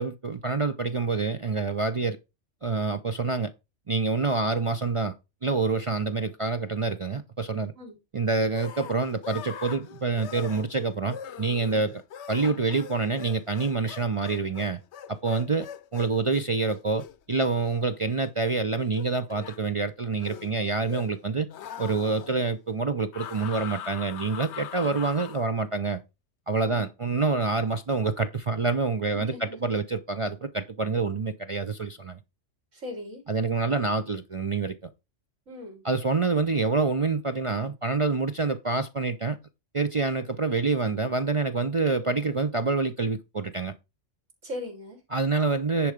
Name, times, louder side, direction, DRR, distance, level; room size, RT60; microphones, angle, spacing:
voice 1, 0.0-2.2 2.6-3.5 3.9-5.1 5.4-7.7 8.1-12.0 12.3-14.8 15.1-15.7 15.9-21.5 21.8-26.0 26.5-29.3 29.6-32.2 33.3-34.7 35.8-39.4 39.7-43.7 45.1-45.9, right 4 dB, 45° right, 0.4 m, -27 dB
sound 1, 8.5-18.5 18.9-19.6 20.1-21.2 21.5-22.4 23.1-25.5, left 8 dB, 65° left, 0.9 m, -42 dB
voice 2, 29.1-29.6 32.7-33.2 35.5-35.8 44.4-45.0, left 1 dB, 75° right, 3.4 m, -39 dB
10.5 x 4.6 x 5.0 m
omnidirectional pair, 1.3 m